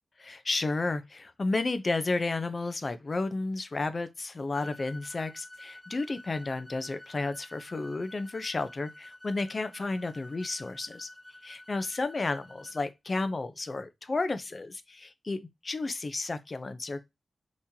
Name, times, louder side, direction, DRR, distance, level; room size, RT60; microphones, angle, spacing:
voice 1, 0.2-11.1 11.4-17.0, left 3 dB, 35° left, 0.4 m, -32 dB
sound 1, 4.5-12.8, left 1 dB, ahead, 0.8 m, -50 dB
3.6 x 3.0 x 2.7 m
wide cardioid pair, 145°, 0 cm